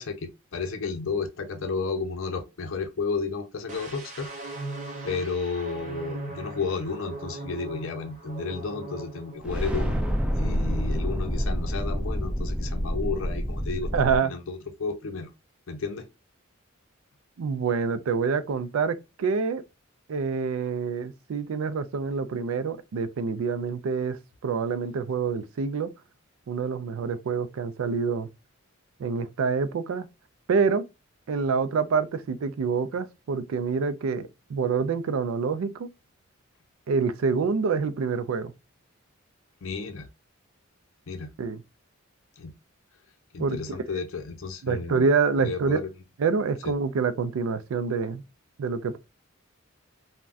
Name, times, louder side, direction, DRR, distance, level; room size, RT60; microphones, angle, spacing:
voice 1, 0.0-4.3 5.0-10.0 10.4-13.9 14.2-15.3 15.7-16.1 39.6-40.1 41.1-41.3 42.4-42.5 43.3-45.0 45.4-45.9 46.6-46.7, left 4 dB, 75° left, 0.5 m, -32 dB
sound 1, 3.7-9.4 9.7-10.0, right 2 dB, 40° right, 0.9 m, -39 dB
sound 2, 9.4-14.2, equal, 5° right, 0.4 m, -28 dB
voice 2, 13.9-14.3 17.4-19.6 20.1-24.2 24.4-25.9 26.5-28.3 29.0-30.1 30.5-30.8 31.3-35.9 36.9-38.5 41.4-41.6 43.4-43.6 44.6-45.8 46.2-48.2 48.6-49.0, right 5 dB, 85° right, 0.4 m, -26 dB
3.4 x 2.1 x 2.4 m
head